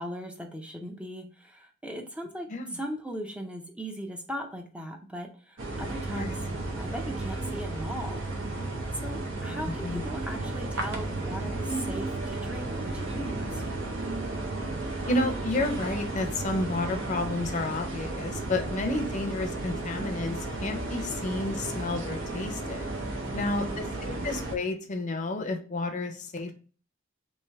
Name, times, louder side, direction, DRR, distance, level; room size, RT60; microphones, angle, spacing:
voice 1, 0.0-8.2 8.9-13.6 23.2-24.2, equal, 5° right, 2 dB, 0.4 m, -39 dB
sound 1, 5.6-24.6, right 2 dB, 75° right, 0.8 m, -33 dB
voice 2, 15.1-22.9 23.3-26.5, left 2 dB, 40° left, 5 dB, 0.5 m, -31 dB
3.2 x 3.1 x 3.3 m, 0.40 s
head